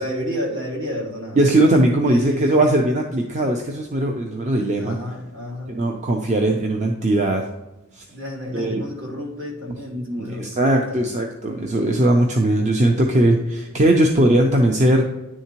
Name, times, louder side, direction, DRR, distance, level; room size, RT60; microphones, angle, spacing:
voice 1, 0.0-1.5 2.0-2.6 4.8-5.8 8.1-11.1, equal, 60° right, -2 dB, 2.2 m, -31 dB
voice 2, 1.4-5.0 5.7-7.5 7.9-8.0 8.5-8.8 9.9-15.0, right 1 dB, 35° right, 2 dB, 0.5 m, -19 dB
9.9 x 3.7 x 2.9 m, 1.0 s
head